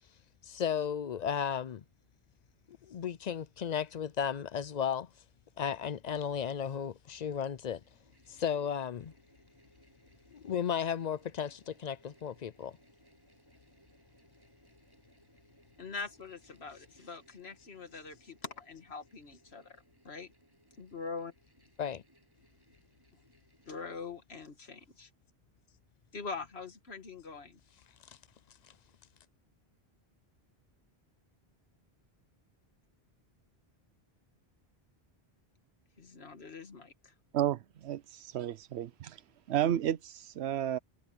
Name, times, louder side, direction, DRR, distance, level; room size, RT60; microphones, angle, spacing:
voice 1, 0.5-1.8 2.7-5.1 5.6-7.8 8.3-9.1 10.3-12.8 21.8-22.0 28.1-28.2, left 8 dB, 50° left, 0.6 m, -34 dB
sound 1, 7.5-23.8, equal, 20° right, 8.0 m, -66 dB
voice 2, 15.8-19.8 20.0-20.3 20.8-21.3 23.7-25.1 26.1-27.6 36.0-37.1, left 4 dB, 75° left, 2.0 m, -43 dB
voice 3, 37.3-39.2 39.5-40.8, right 11 dB, 85° right, 0.9 m, -32 dB
omnidirectional pair, 1.1 m